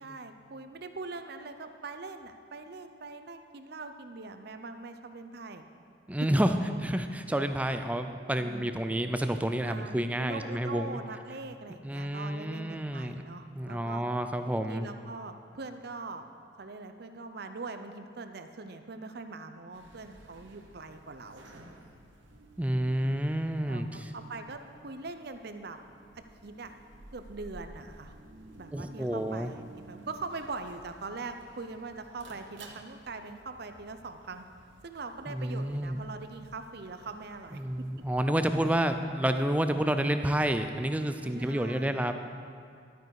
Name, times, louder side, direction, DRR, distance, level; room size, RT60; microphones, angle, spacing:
voice 1, 0.0-5.6 8.4-8.8 9.6-14.0 14.5-16.2 16.6-21.4 23.7-25.8 26.4-26.7 27.1-28.2 28.6-34.4 34.8-37.6 41.2-42.0, right 3 dB, 55° right, 8 dB, 0.7 m, -42 dB
voice 2, 6.1-6.6 6.8-11.0 11.8-13.2 13.5-14.9 22.6-24.1 28.7-29.5 35.3-36.0 37.6-42.2, right 1 dB, 5° right, 8 dB, 0.4 m, -29 dB
sound 1, 19.7-39.1, right 2 dB, 70° right, 1.0 m, -54 dB
12.5 x 9.2 x 4.8 m, 2.3 s
head